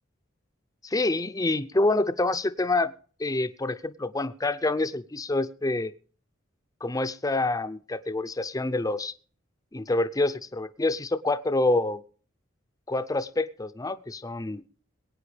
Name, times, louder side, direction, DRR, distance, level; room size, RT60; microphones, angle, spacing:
voice 1, 0.8-2.9 3.2-5.9 6.8-9.1 9.7-12.0 12.9-14.6, left 2 dB, 20° left, 11 dB, 0.6 m, -27 dB
22.5 x 9.1 x 3.3 m, 0.41 s
head